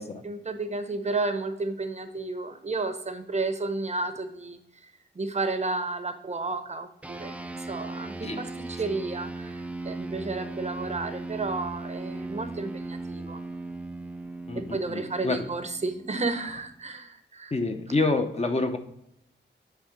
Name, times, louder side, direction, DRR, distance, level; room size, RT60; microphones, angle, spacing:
voice 1, 0.2-4.6 5.2-9.6 9.8-13.4 14.7-17.5, right 3 dB, 35° right, 8 dB, 0.7 m, -32 dB
sound 1, 7.0-16.8, right 2 dB, 5° right, 0.3 m, -38 dB
voice 2, 14.5-15.5 17.5-18.8, left 3 dB, 35° left, 5 dB, 0.7 m, -28 dB
8.3 x 3.3 x 5.0 m, 0.78 s
wide cardioid pair, 140°, 20 cm